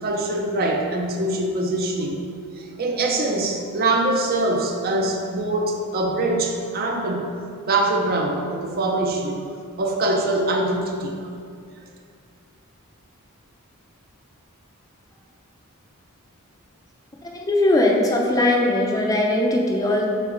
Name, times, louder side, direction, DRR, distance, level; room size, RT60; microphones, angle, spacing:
voice 1, 0.0-2.2 2.6-7.3 7.7-9.4 9.8-11.3, right 2 dB, 45° right, 2 dB, 0.6 m, -23 dB
voice 2, 17.3-20.1, left 1 dB, 15° left, -1 dB, 0.5 m, -20 dB
5.7 x 4.4 x 3.9 m, 2.3 s
head